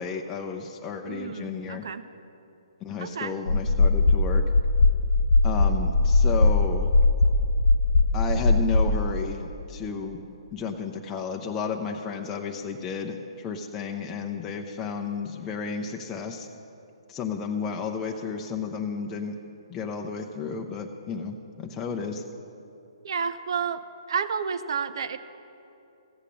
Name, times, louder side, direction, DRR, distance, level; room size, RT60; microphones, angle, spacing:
voice 1, 0.0-1.9 2.8-4.4 5.4-6.9 8.1-10.2 10.5-16.5 17.1-19.4 19.7-22.2, left 5 dB, 15° left, 2 dB, 0.6 m, -32 dB
voice 2, 1.1-2.0 3.0-3.3 23.0-23.8 24.1-25.2, right 6 dB, 55° right, 12 dB, 0.6 m, -30 dB
sound 1, 3.5-9.0, left 2 dB, 65° left, 0.7 m, -20 dB
14.5 x 8.3 x 6.5 m, 2.8 s
figure-of-eight pair, 130°, 3 cm